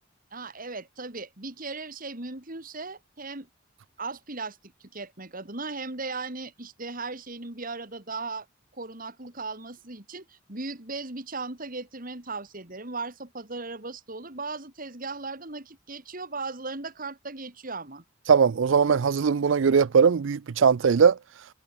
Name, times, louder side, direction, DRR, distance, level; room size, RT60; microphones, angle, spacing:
voice 1, 0.3-3.5 4.0-8.5 8.7-18.0, right 3 dB, 45° right, 3.2 m, -37 dB
voice 2, 18.3-21.2, right 6 dB, 70° right, 0.4 m, -20 dB
head